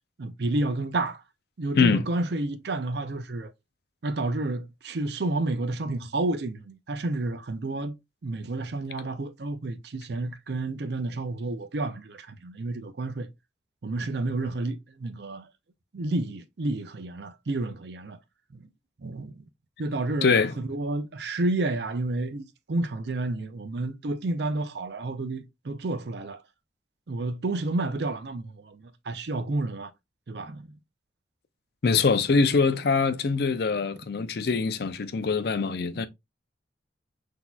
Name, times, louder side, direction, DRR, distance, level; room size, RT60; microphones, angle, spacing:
voice 1, 0.2-1.2 1.6-3.5 4.0-7.9 8.2-13.3 13.8-15.5 15.9-18.2 18.5-18.7 19.0-19.5 19.8-26.4 27.1-29.9 30.3-30.7, right 2 dB, 60° right, 0.5 m, -30 dB
voice 2, 20.2-20.5 31.8-36.1, left 4 dB, 60° left, 0.4 m, -23 dB
5.9 x 2.8 x 2.2 m
head